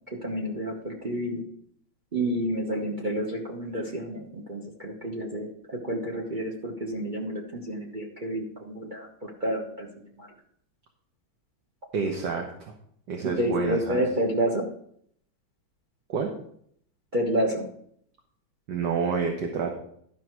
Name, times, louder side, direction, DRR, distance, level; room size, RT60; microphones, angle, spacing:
voice 1, 0.2-1.4 2.1-9.9 10.2-10.3 12.0-12.1 13.4-14.7 17.1-17.7, right 1 dB, 35° right, 0 dB, 0.9 m, -29 dB
voice 2, 11.9-12.7 13.1-14.0 16.1-16.3 18.7-19.8, right 5 dB, 65° right, 2 dB, 1.6 m, -29 dB
12.0 x 5.5 x 4.6 m, 0.66 s
omnidirectional pair, 2.1 m